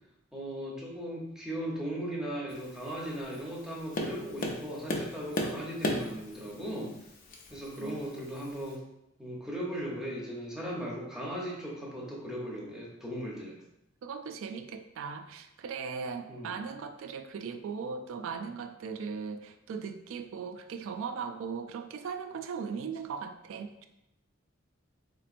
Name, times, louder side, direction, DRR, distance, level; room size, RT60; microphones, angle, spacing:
voice 1, 0.3-6.9 7.5-8.8 9.2-13.6 16.3-16.5, equal, 5° right, -4 dB, 0.7 m, -37 dB
Tap, 2.5-8.7, left 1 dB, 45° left, 0.5 m, -38 dB
voice 2, 14.0-23.9, right 5 dB, 80° right, 7 dB, 0.3 m, -38 dB
4.1 x 2.9 x 2.5 m, 0.82 s
head